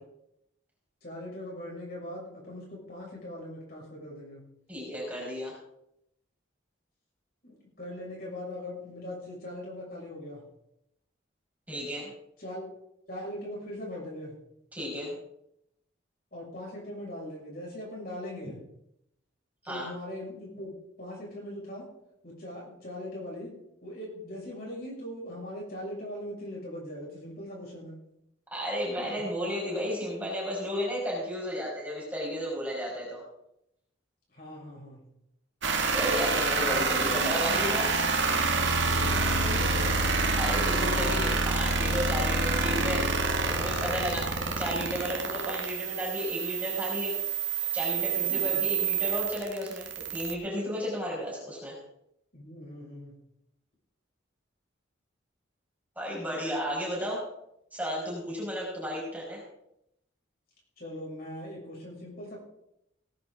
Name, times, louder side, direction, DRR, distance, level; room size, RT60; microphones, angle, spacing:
voice 1, 1.0-4.4 7.4-10.4 12.4-12.6 13.1-14.4 16.3-18.6 19.6-21.9 22.2-23.5 23.8-28.0 28.9-29.2 34.3-35.0 36.6-37.5 38.9-40.0 44.1-44.3 48.2-48.6 52.3-53.2 60.8-62.4, left 1 dB, 50° left, -4 dB, 6.4 m, -40 dB
voice 2, 4.7-5.5 11.7-12.1 14.7-15.1 19.6-19.9 28.5-33.2 35.9-37.9 40.3-43.1 43.4-47.1 47.7-51.8 55.9-57.2 57.7-59.4, equal, 10° right, -5 dB, 5.2 m, -33 dB
sound 1, 35.6-50.3, right 4 dB, 70° right, 2.0 m, -27 dB
18.5 x 10.5 x 4.0 m, 0.79 s
head